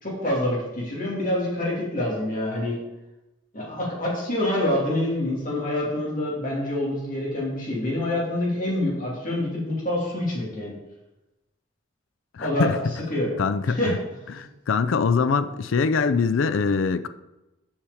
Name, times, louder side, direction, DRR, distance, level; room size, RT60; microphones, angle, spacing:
voice 1, 0.0-2.8 3.5-10.7 12.4-12.7 13.1-13.3 13.7-13.9 14.3-14.4, left 1 dB, 45° left, 2.6 m, -26 dB
voice 2, 12.3-12.8 13.4-13.8 14.4-17.1, left 5 dB, 90° left, 0.4 m, -23 dB
7.2 x 5.0 x 6.9 m
head